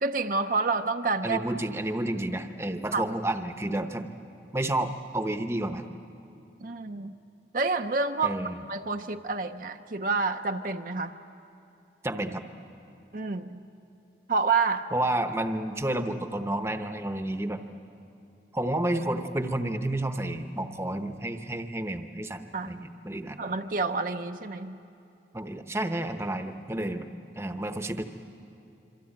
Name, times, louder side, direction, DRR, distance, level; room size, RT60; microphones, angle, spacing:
voice 1, 0.0-1.4 2.9-3.0 6.6-7.2 7.5-8.4 8.7-11.1 13.1-13.6 14.3-14.9 22.5-22.8 23.4-24.8, right 4 dB, 50° right, 5 dB, 0.6 m, -28 dB
voice 2, 1.2-4.1 4.5-5.8 8.2-8.6 12.0-12.4 14.9-17.6 18.5-23.4 25.3-27.1 27.4-28.0, right 1 dB, 15° right, 7 dB, 0.9 m, -30 dB
26.5 x 24.5 x 8.8 m, 2.7 s
head